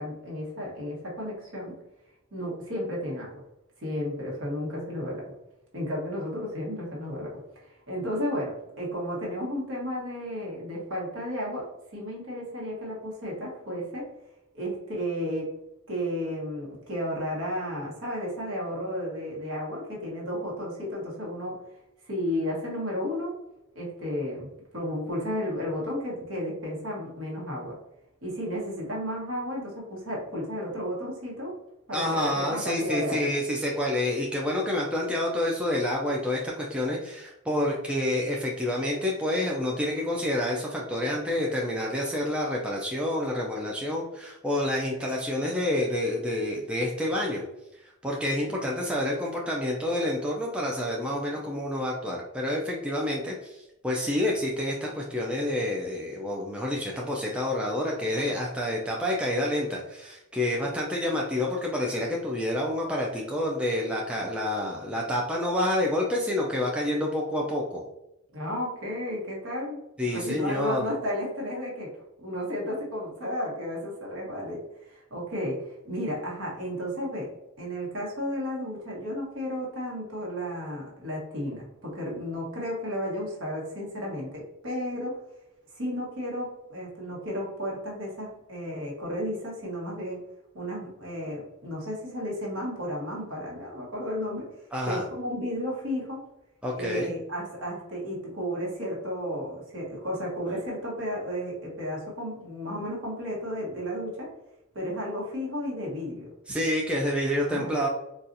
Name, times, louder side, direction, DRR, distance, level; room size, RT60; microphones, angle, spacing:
voice 1, 0.0-1.7 2.3-3.4 3.8-5.3 5.7-11.6 11.9-14.1 14.5-15.5 15.9-21.6 22.1-23.3 23.7-27.8 28.2-31.5 31.9-33.3 48.5-48.7 68.3-69.8 70.1-71.9 72.2-77.3 77.6-85.2 85.7-90.2 90.5-94.4 94.8-96.2 96.8-104.3 104.7-106.3 107.5-107.8, equal, 60° right, -3 dB, 1.1 m, -33 dB
voice 2, 31.9-47.4 47.8-67.8 70.0-70.9 94.7-95.0 96.6-97.1 106.5-107.9, left 1 dB, 5° right, -3 dB, 0.3 m, -28 dB
4.0 x 2.3 x 2.6 m, 0.90 s
head